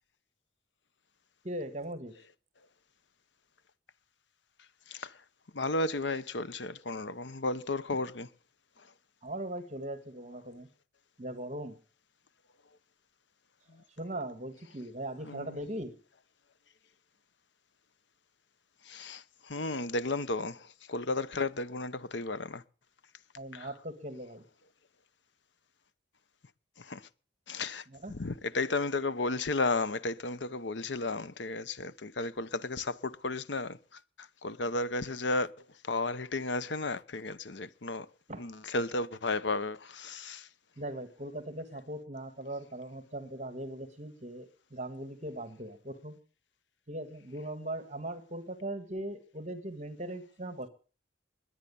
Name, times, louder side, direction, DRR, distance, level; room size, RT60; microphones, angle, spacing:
voice 1, 1.4-2.1 9.2-10.7 11.2-11.7 14.0-15.9 23.4-24.4 27.9-28.1 38.3-38.5 40.8-46.2 46.9-50.7, right 1 dB, 40° right, 1.6 m, -39 dB
voice 2, 5.5-8.3 15.2-15.6 18.9-22.6 23.5-23.7 26.8-27.0 27.5-33.8 34.2-35.5 35.9-38.1 38.4-40.5, left 3 dB, 80° left, 0.9 m, -33 dB
21.0 x 9.2 x 6.9 m
head